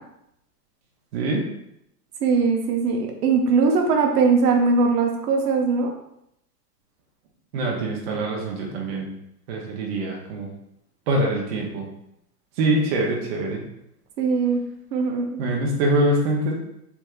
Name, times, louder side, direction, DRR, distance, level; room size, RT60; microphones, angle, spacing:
voice 1, 1.1-1.5 7.5-9.1 9.5-10.5 11.1-11.9 12.6-13.6 15.4-16.5, right 1 dB, 40° right, -1 dB, 0.6 m, -24 dB
voice 2, 2.2-5.9 14.2-14.6 14.9-15.4, right 4 dB, 70° right, 2 dB, 0.8 m, -20 dB
3.4 x 3.0 x 2.4 m, 0.78 s
supercardioid pair, 155°, 48 cm